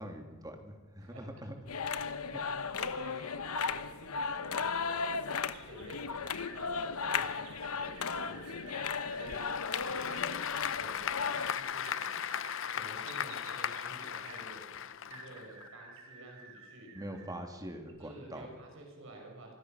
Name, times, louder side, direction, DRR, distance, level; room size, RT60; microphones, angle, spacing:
voice 1, 0.0-1.5 2.3-2.4 16.9-18.5, right 1 dB, 15° right, 4 dB, 3.1 m, -43 dB
sound 1, 1.7-11.5, left 5 dB, 90° left, 1.1 m, -35 dB
voice 2, 2.7-5.4 5.6-10.4 10.7-12.0 12.7-14.7 15.1-16.9 18.0-19.5, right 1 dB, 65° right, 1 dB, 5.8 m, -51 dB
sound 2, 5.5-6.6 7.2-10.2 11.3-14.4 15.1-17.4 17.8-17.9, right 3 dB, 85° right, 5.5 m, -51 dB
Applause / Crowd, 9.1-15.7, left 8 dB, 60° left, 0.7 m, -38 dB
26.0 x 21.0 x 6.6 m, 1.2 s
head